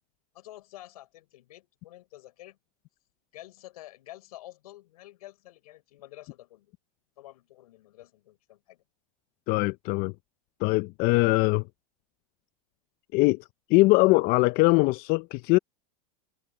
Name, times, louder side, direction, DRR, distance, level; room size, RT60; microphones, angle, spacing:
voice 1, 0.3-2.6 3.3-6.7 7.2-8.8, left 15 dB, 80° left, 6.5 m, -49 dB
voice 2, 9.5-10.1 10.6-11.6 13.1-13.4 13.7-15.6, left 23 dB, 50° left, 0.6 m, -22 dB
hypercardioid pair, 110°, 19 cm